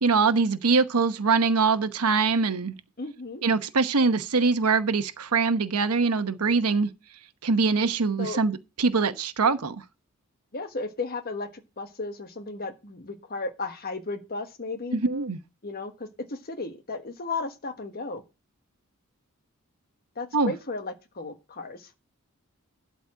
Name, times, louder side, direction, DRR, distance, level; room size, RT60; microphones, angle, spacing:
voice 1, 0.0-2.7 3.4-6.9 7.4-9.8 14.9-15.4 20.3-20.5, right 4 dB, 85° right, 1.0 m, -23 dB
voice 2, 3.0-3.4 8.2-8.4 10.5-11.5 11.8-15.0 15.6-18.2 20.2-21.9, left 3 dB, 45° left, 1.3 m, -34 dB
12.0 x 4.2 x 7.4 m
head